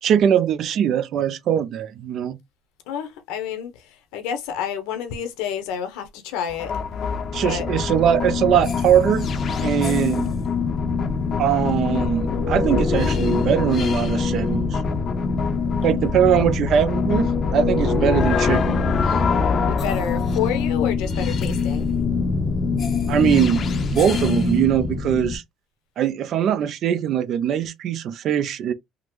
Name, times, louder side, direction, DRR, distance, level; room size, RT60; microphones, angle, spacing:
voice 1, 0.0-2.4 7.3-9.3 9.6-10.3 11.4-14.8 15.8-18.8 19.1-19.2 23.1-25.4 26.0-28.7, right 9 dB, 55° right, 0.5 m, -21 dB
voice 2, 2.9-3.7 4.1-6.7 7.4-7.7 16.0-16.1 19.7-21.9, left 9 dB, 85° left, 0.8 m, -29 dB
sound 1, 6.5-25.4, left 4 dB, 40° left, 0.5 m, -23 dB
3.6 x 2.0 x 3.0 m
cardioid pair, 105°, 0 cm